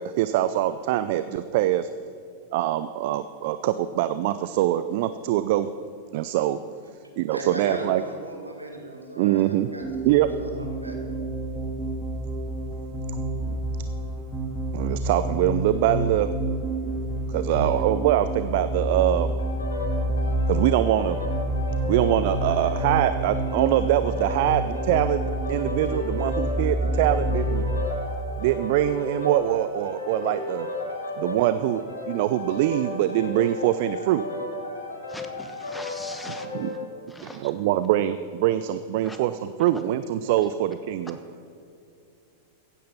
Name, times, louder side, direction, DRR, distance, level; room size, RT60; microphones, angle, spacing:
voice 1, 0.0-1.9 2.5-5.7 6.1-6.6 7.2-8.0 9.2-9.7 10.0-10.3 13.5-13.6 14.7-16.3 17.3-19.3 20.5-21.2 21.9-25.2 25.5-27.6 28.4-30.7 31.2-34.2 36.4-36.7 37.2-41.2, right 13 dB, 50° right, 12 dB, 0.4 m, -23 dB
voice 2, 7.3-11.0, right 1 dB, 90° right, 1 dB, 2.1 m, -37 dB
sound 1, 9.8-27.9, right 1 dB, 15° right, 2.0 m, -28 dB
sound 2, 19.4-36.8, left 2 dB, 80° left, 2.1 m, -34 dB
voice 3, 35.1-36.5 37.1-37.4 39.0-39.2, left 1 dB, 5° left, 6 dB, 1.3 m, -41 dB
15.5 x 9.4 x 5.5 m, 2.5 s
figure-of-eight pair, 90°, 0 cm